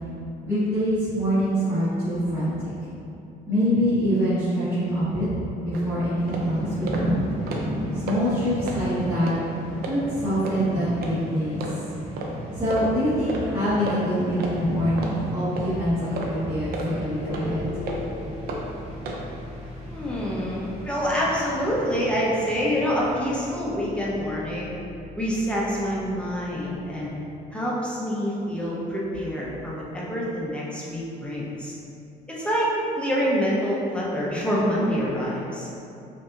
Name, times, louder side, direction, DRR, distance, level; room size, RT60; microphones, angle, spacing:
voice 1, 0.4-2.5 3.5-5.3 5.6-7.1 7.9-9.3 9.8-11.6 12.6-17.6, equal, 15° right, -14 dB, 1.4 m, -24 dB
sound 1, 5.7-5.8 6.3-6.4 6.9-7.0 7.3-7.8 8.1-8.2 8.6-8.8 9.2-9.4 9.8-10.0 10.4-10.6 11.0-11.1 11.6-11.7 12.2-12.3 12.7-12.9 13.3-13.4 13.9-14.0 14.4-14.5 15.0-15.1 15.6-15.7 16.2-16.3 16.7-16.9 17.3-17.4 17.9-18.0 18.5-18.6 19.0-19.2, right 3 dB, 65° right, 0.6 m, -32 dB
sound 2, 6.1-23.2, right 1 dB, 35° right, 1.2 m, -35 dB
sound 3, 17.2-27.4, left 2 dB, 90° left, 0.6 m, -40 dB
voice 2, 19.9-24.7 25.2-27.1 27.5-31.8 32.3-35.7, equal, 5° left, -7 dB, 0.9 m, -26 dB
5.2 x 2.8 x 2.5 m, 2.7 s
cardioid pair, 110°, 17 cm